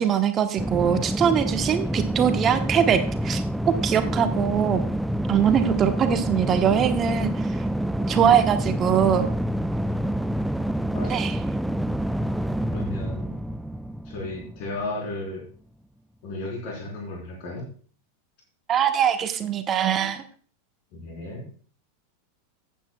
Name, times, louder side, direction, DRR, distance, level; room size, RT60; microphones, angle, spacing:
voice 1, 0.0-4.8 5.3-7.5 8.1-9.3 11.1-11.4 18.7-20.2, right 8 dB, 25° right, 9 dB, 1.0 m, -22 dB
sound 1, 0.6-15.0, equal, ahead, 0.3 m, -27 dB
voice 2, 10.9-11.2 12.7-13.3 14.1-15.4 16.2-17.7 20.9-21.4, left 1 dB, 45° left, -1 dB, 3.9 m, -34 dB
14.5 x 8.4 x 2.3 m, 0.42 s
figure-of-eight pair, 90°, 0 cm